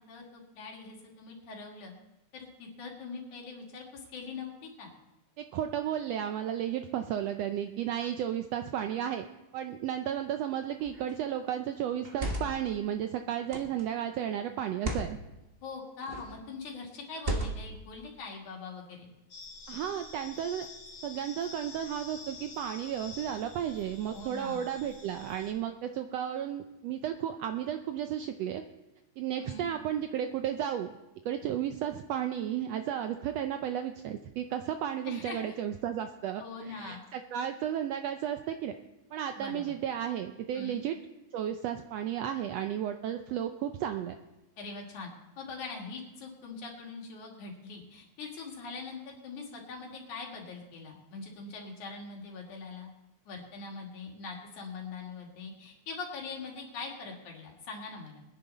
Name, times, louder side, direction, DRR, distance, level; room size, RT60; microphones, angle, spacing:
voice 1, 0.1-1.9 2.3-4.9 15.6-19.1 24.1-24.7 29.4-29.7 35.1-35.5 36.4-37.0 39.4-39.8 40.5-40.8 44.6-45.1 45.4-52.9 53.3-58.2, left 4 dB, 80° left, 0 dB, 3.7 m, -42 dB
voice 2, 5.4-9.3 9.5-15.2 19.7-20.7 21.0-28.6 29.2-30.9 31.2-38.7 39.1-41.0 41.3-44.1, right 10 dB, 75° right, 7 dB, 1.5 m, -33 dB
sound 1, 10.8-11.1 11.9-12.7 13.5-13.8 14.7-15.1 16.0-16.4 17.2-17.8, right 1 dB, 50° right, 0.6 m, -35 dB
sound 2, 19.3-25.5, left 4 dB, 55° left, 2.9 m, -48 dB
22.0 x 10.5 x 4.1 m, 0.99 s
omnidirectional pair, 3.4 m